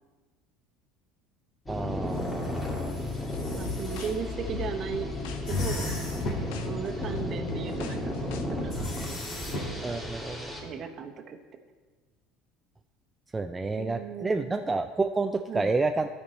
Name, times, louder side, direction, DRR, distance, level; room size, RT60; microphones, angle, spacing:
sound 1, 1.7-10.6, left 1 dB, 15° left, 2.3 m, -34 dB
voice 1, 1.7-2.7 9.8-10.5 13.3-16.1, right 3 dB, 20° right, 6 dB, 0.4 m, -29 dB
sound 2, 2.1-4.1 5.5-6.6 8.7-9.8, left 2 dB, 55° left, 1.8 m, -36 dB
sound 3, 3.3-8.4, left 8 dB, 70° left, 0.6 m, -41 dB
voice 2, 3.5-5.1 5.4-5.9 6.4-8.3 8.6-9.0 9.5-10.0 10.6-11.4 13.7-14.6 15.5-15.7, right 6 dB, 45° right, 5 dB, 0.9 m, -37 dB
12.5 x 4.4 x 4.1 m, 1.4 s
hypercardioid pair, 75°, 0 cm